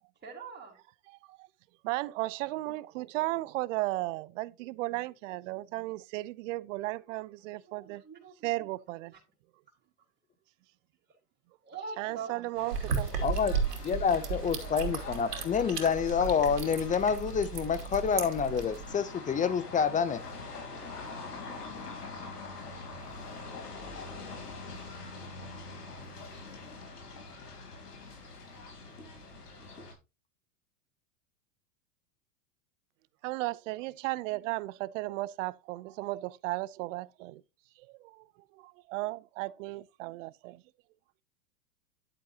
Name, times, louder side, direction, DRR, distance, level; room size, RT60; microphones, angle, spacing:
voice 1, 0.2-0.8 7.0-8.5 11.6-12.3, right 5 dB, 25° right, 4.3 m, -44 dB
voice 2, 1.1-1.5 1.8-8.0 8.4-9.1 12.0-13.2 33.2-37.4 37.9-38.3 38.6-40.6, right 20 dB, 55° right, 0.7 m, -35 dB
sound 1, 12.5-29.9, left 3 dB, 90° left, 3.7 m, -44 dB
sound 2, 12.7-18.9, right 6 dB, 90° right, 2.4 m, -35 dB
voice 3, 13.2-13.6 13.8-20.2, left 6 dB, 15° left, 0.6 m, -28 dB
11.0 x 8.1 x 2.8 m
hypercardioid pair, 105°, 46 cm